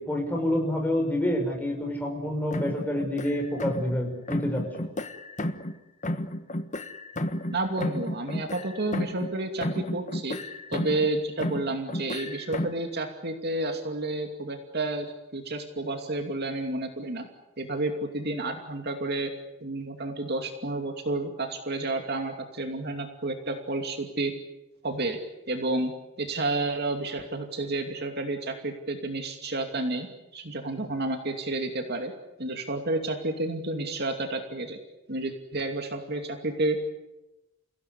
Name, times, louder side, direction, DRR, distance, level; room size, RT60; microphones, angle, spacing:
voice 1, 0.0-4.9, left 1 dB, 10° left, 1 dB, 6.2 m, -28 dB
sound 1, 2.5-4.0 4.3-5.8 6.0-9.4 9.6-11.1 11.4-12.9, left 1 dB, 35° left, 1.4 m, -33 dB
voice 2, 7.5-10.4 10.7-17.3 17.6-19.3 19.6-24.3 24.8-25.2 25.5-25.9 26.2-30.1 30.3-32.1 32.4-34.8 35.1-36.8, right 2 dB, 50° right, 4 dB, 2.6 m, -30 dB
30.0 x 17.0 x 9.9 m, 1.0 s
head